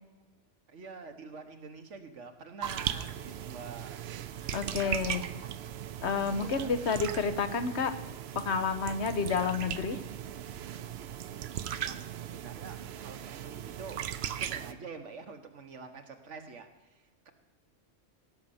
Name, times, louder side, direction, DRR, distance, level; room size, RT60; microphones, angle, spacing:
voice 1, 0.7-4.1 4.3-4.7 6.3-6.7 11.1-11.5 11.8-17.3, right 4 dB, 80° right, 7 dB, 1.5 m, -47 dB
sound 1, 2.6-14.7, right 10 dB, 65° right, 0.8 m, -38 dB
voice 2, 4.5-5.2 6.0-8.0 8.3-10.0, left 5 dB, 65° left, 10 dB, 1.2 m, -30 dB
16.5 x 6.5 x 7.1 m, 1.1 s
omnidirectional pair, 1.2 m